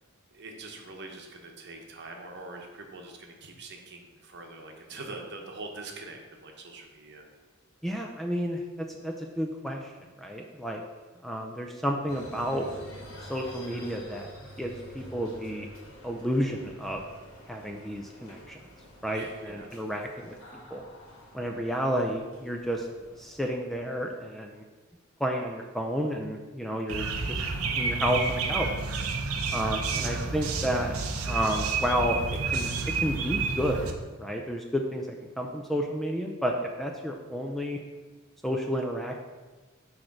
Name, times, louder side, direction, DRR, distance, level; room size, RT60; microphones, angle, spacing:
voice 1, 0.3-7.2 19.1-19.8 26.6-27.1 29.9-30.3, right 2 dB, 55° right, 2 dB, 0.9 m, -44 dB
voice 2, 7.8-9.9 10.2-10.8 11.2-12.7 13.2-14.3 14.6-15.7 16.0-17.0 17.5-18.6 19.0-20.4 20.7-20.8 21.3-22.9 23.2-24.6 25.2-27.4 27.8-28.7 29.5-31.0 31.2-32.2 32.5-32.7 33.0-35.1 35.4-37.8 38.4-39.2, equal, ahead, 1 dB, 0.3 m, -31 dB
sound 1, 12.1-23.5, equal, 85° left, 1.7 m, -47 dB
sound 2, 26.9-33.9, right 4 dB, 90° right, 0.7 m, -30 dB
6.3 x 3.2 x 5.9 m, 1.3 s
head